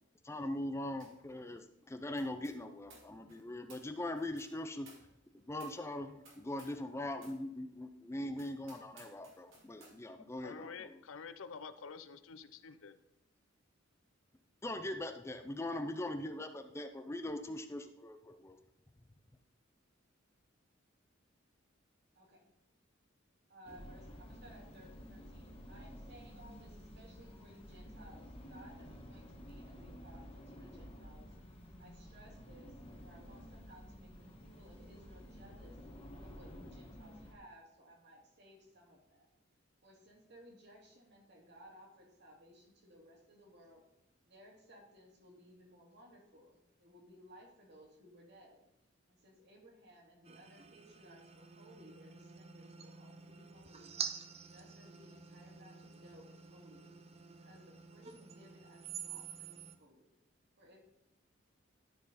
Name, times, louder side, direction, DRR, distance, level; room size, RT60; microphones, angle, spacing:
voice 1, 0.2-4.9 5.3-10.9 14.6-18.6, left 1 dB, 15° left, 7 dB, 0.5 m, -41 dB
sound 1, 1.0-1.3 1.5-6.9 7.2-7.4 7.9-8.0 8.3-10.0, right 2 dB, 85° right, 2.4 m, -61 dB
voice 2, 10.4-13.0, left 5 dB, 85° left, 12 dB, 0.6 m, -48 dB
voice 3, 22.1-22.5 23.5-31.3 31.8-32.7 33.0-34.1 34.4-35.8 36.2-39.3 39.8-43.9 44.3-48.6 49.1-54.0 54.5-56.9 57.4-60.1 60.6-60.8, equal, 60° right, 0 dB, 2.4 m, -60 dB
sound 2, 23.6-37.3, equal, 30° left, 1.4 m, -52 dB
sound 3, 50.2-59.8, right 7 dB, 30° right, 0.6 m, -48 dB
13.0 x 4.4 x 4.2 m, 0.85 s
head